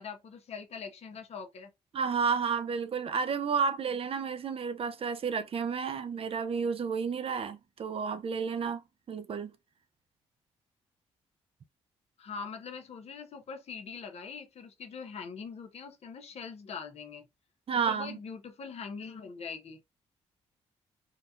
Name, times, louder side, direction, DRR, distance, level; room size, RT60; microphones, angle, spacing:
voice 1, 0.0-1.7 12.2-17.3 17.9-19.8, left 5 dB, 60° left, 0.8 m, -42 dB
voice 2, 1.9-8.8 9.1-9.5 17.7-18.2, right 6 dB, 50° right, 0.6 m, -31 dB
3.8 x 2.2 x 2.6 m
supercardioid pair, 60°, 12 cm